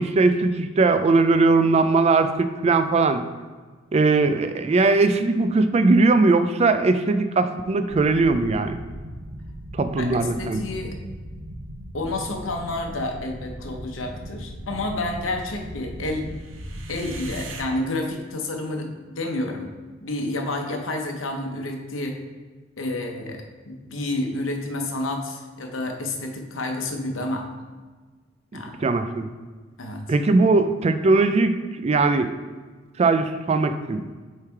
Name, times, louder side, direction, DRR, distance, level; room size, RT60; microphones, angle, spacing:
voice 1, 0.0-3.2 3.9-8.8 9.7-10.6 28.5-29.3 30.1-31.6 31.8-32.3 33.0-34.0, right 3 dB, 35° right, 9 dB, 0.3 m, -20 dB
sound 1, 7.9-17.6, right 1 dB, 80° right, 0.7 m, -38 dB
voice 2, 10.0-11.0 11.9-16.3 16.9-19.7 20.0-22.2 22.8-27.5 28.5-28.8 29.8-30.0, left 2 dB, 90° left, 3 dB, 0.9 m, -29 dB
7.0 x 3.3 x 4.5 m, 1.4 s
head